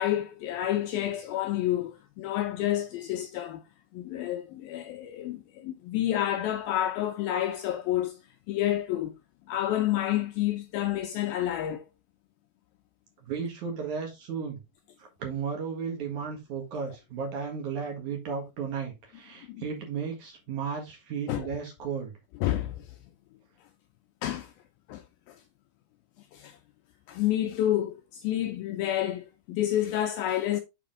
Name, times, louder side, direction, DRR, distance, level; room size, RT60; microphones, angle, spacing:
voice 1, 0.0-3.6 3.9-8.2 8.5-9.1 9.5-11.8 19.5-19.6 21.3-21.5 22.4-22.9 24.2-24.5 24.9-25.4 26.3-26.6 27.1-30.6, left 12 dB, 85° left, 2.1 m, -29 dB
voice 2, 13.2-14.6 15.0-22.1, right 6 dB, 55° right, 2.6 m, -34 dB
6.8 x 5.0 x 3.7 m
omnidirectional pair, 4.8 m